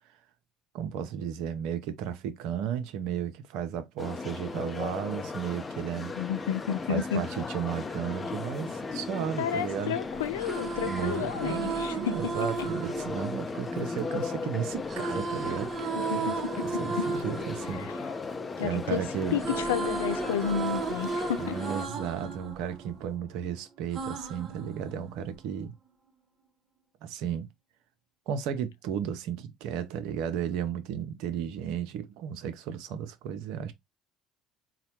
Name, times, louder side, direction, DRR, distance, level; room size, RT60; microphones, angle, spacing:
voice 1, 0.7-6.1 6.9-9.9 10.8-16.4 16.6-17.9 18.6-19.4 21.4-25.7 27.0-27.5 28.3-33.7, right 8 dB, 75° right, 0.7 m, -34 dB
sound 1, 4.0-21.9, left 4 dB, 30° left, 0.6 m, -37 dB
voice 2, 6.1-7.2 9.4-12.2 16.0-16.7 17.0-17.1 17.7-17.9 18.6-19.1 19.3-21.6, left 9 dB, 90° left, 0.4 m, -31 dB
sound 2, 10.2-14.3 14.9-18.9 19.2-23.4 23.9-25.4, right 4 dB, 45° right, 1.1 m, -35 dB
4.0 x 2.2 x 2.9 m
hypercardioid pair, 70°, 0 cm